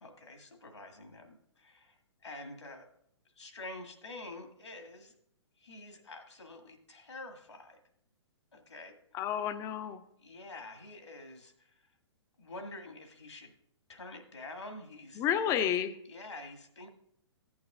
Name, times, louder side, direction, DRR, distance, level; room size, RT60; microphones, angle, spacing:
voice 1, 0.0-2.8 3.4-5.2 5.6-7.8 8.5-9.3 10.2-11.8 12.4-13.5 13.9-15.5 16.1-16.9, left 2 dB, 80° left, 4 dB, 1.9 m, -47 dB
voice 2, 9.1-10.0 15.2-15.9, left 9 dB, 20° left, 11 dB, 0.6 m, -30 dB
15.0 x 8.7 x 2.4 m, 0.72 s
figure-of-eight pair, 120°, 15 cm